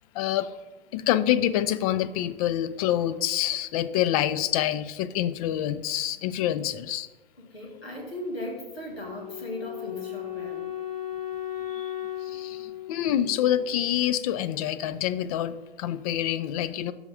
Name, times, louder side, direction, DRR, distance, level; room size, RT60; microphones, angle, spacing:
voice 1, 0.1-0.5 0.9-7.1 11.7-11.9 12.3-16.9, left 11 dB, 40° left, 14 dB, 0.4 m, -26 dB
voice 2, 7.4-10.7, left 1 dB, 90° left, 1 dB, 1.9 m, -37 dB
Wind instrument woodwind instrument, 8.9-14.0, left 12 dB, 70° left, 1.3 m, -36 dB
6.5 x 5.0 x 4.8 m, 1.1 s
hypercardioid pair, 115°, 30 cm